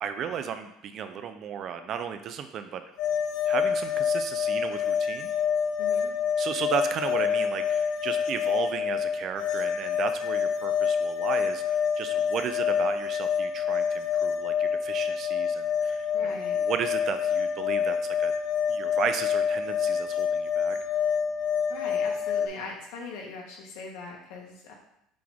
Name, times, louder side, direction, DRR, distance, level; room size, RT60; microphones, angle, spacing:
voice 1, 0.0-2.8 3.5-5.3 6.4-18.3 18.7-20.8, right 8 dB, 35° right, 9 dB, 0.5 m, -34 dB
sound 1, 3.0-22.5, left 7 dB, 55° left, 0.7 m, -27 dB
voice 2, 5.8-6.1 16.1-16.6 21.7-24.7, left 4 dB, 80° left, -1 dB, 1.9 m, -41 dB
7.5 x 4.1 x 3.5 m, 0.76 s
cardioid pair, 170°, 0 cm